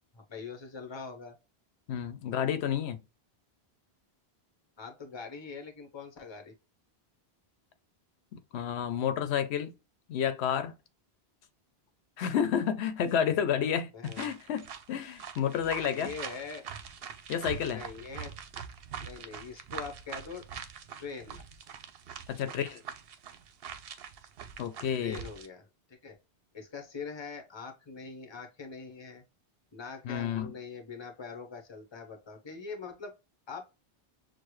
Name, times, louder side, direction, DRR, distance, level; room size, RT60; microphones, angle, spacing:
voice 1, 0.1-1.4 4.8-6.5 13.9-14.3 15.9-16.6 17.7-18.3 19.0-20.4 21.0-21.4 22.4-22.6 25.0-26.2 26.5-29.2 29.7-33.1 33.5-33.7, left 5 dB, 30° left, 0.8 m, -43 dB
voice 2, 1.9-3.0 8.3-9.7 10.1-10.7 12.2-16.1 17.3-17.8 22.3-22.8 24.6-25.2 30.0-30.5, left 8 dB, 85° left, 0.9 m, -30 dB
sound 1, 14.0-25.5, right 8 dB, 70° right, 0.8 m, -43 dB
6.5 x 2.2 x 3.0 m
omnidirectional pair, 1.1 m